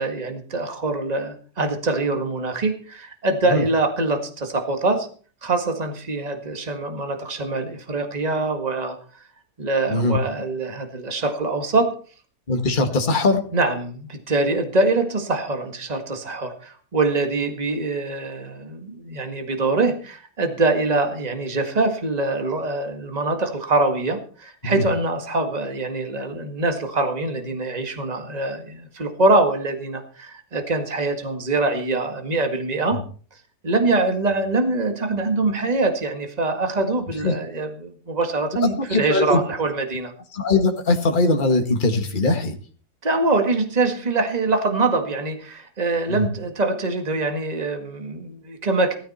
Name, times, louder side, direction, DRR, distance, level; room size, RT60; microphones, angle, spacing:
voice 1, 0.0-5.1 5.4-9.0 9.6-11.9 13.5-33.0 33.6-40.1 43.0-49.0, right 3 dB, 25° right, 5 dB, 1.9 m, -24 dB
voice 2, 12.5-13.4 24.6-24.8 32.9-33.0 37.2-37.3 38.6-39.4 40.3-42.6 46.1-46.3, left 2 dB, 30° left, 4 dB, 1.9 m, -21 dB
16.5 x 14.0 x 4.3 m, 0.42 s
omnidirectional pair, 1.7 m